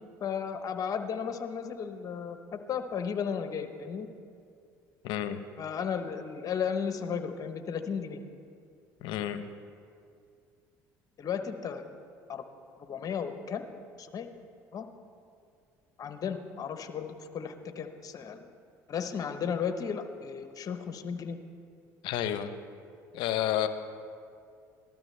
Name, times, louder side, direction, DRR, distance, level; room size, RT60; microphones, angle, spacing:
voice 1, 0.2-4.1 5.6-8.2 11.2-11.8 12.3-12.4 12.8-13.6 14.0-14.3 14.7-14.9 16.0-18.5 18.9-21.4, left 7 dB, 45° left, 8 dB, 0.9 m, -34 dB
voice 2, 5.0-5.4 9.0-9.4 22.0-22.5 23.1-23.7, left 11 dB, 70° left, 10 dB, 0.7 m, -30 dB
13.5 x 12.0 x 3.3 m, 2.4 s
hypercardioid pair, 70°, 9 cm